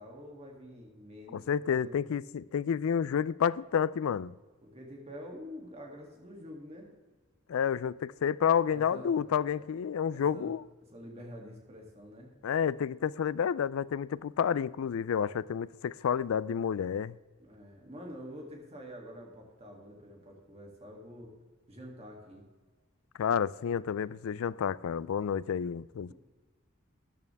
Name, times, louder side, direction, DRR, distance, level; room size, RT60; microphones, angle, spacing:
voice 1, 0.0-2.0 4.6-6.9 8.7-9.3 9.6-9.7 10.1-10.5 10.9-12.3 17.4-21.3 21.7-22.4, equal, 30° right, 2.5 m, -47 dB
voice 2, 1.3-4.3 7.5-10.6 12.4-17.2 23.2-26.1, left 7 dB, 85° left, 0.4 m, -30 dB
13.5 x 10.5 x 3.5 m
head